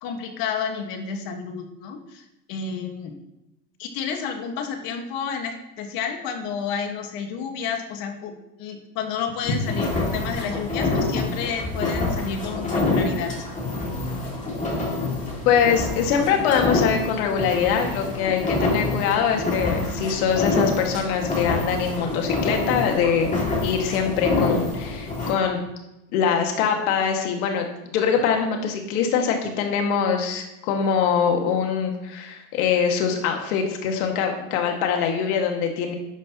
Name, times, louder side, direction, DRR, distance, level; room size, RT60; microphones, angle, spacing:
voice 1, 0.0-3.2 3.8-13.3, left 6 dB, 50° left, 5 dB, 1.8 m, -30 dB
sound 1, 9.4-25.3, left 2 dB, 15° left, 2.6 m, -26 dB
voice 2, 15.5-23.3 23.6-25.6 26.1-27.7 27.9-35.9, left 7 dB, 65° left, 2 dB, 2.2 m, -23 dB
12.0 x 9.8 x 3.0 m, 0.92 s
supercardioid pair, 135°, 45 cm